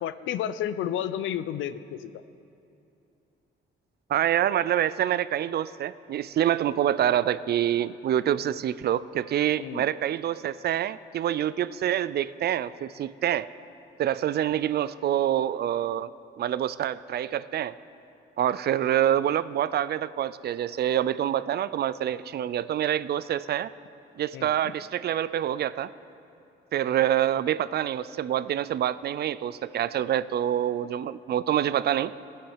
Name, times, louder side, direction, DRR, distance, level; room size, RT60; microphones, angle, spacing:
voice 1, 0.0-2.1 9.6-9.9 24.3-24.5, left 10 dB, 80° left, 14 dB, 0.5 m, -31 dB
voice 2, 4.1-13.5 14.0-16.1 16.4-17.7 18.4-23.7 24.2-25.9 26.7-32.1, right 11 dB, 55° right, 17 dB, 0.4 m, -26 dB
17.0 x 9.3 x 4.6 m, 2.8 s
cardioid pair, 90°, 20 cm